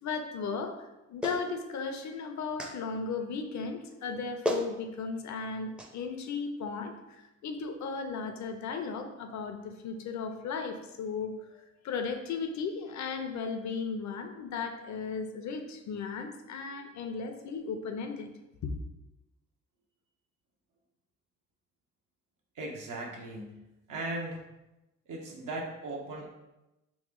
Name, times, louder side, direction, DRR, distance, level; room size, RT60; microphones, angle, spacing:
voice 1, 0.0-18.3 18.6-18.7, left 5 dB, 65° left, 6 dB, 0.6 m, -36 dB
Clapping, 1.2-1.4 2.6-2.8 4.0-4.1 4.4-4.7 5.8-5.9, equal, 5° right, 0.4 m, -32 dB
voice 2, 22.5-23.6 23.9-24.4 25.1-26.3, right 2 dB, 90° right, -1 dB, 0.8 m, -38 dB
3.2 x 3.1 x 3.7 m, 0.96 s
cardioid pair, 110°, 30 cm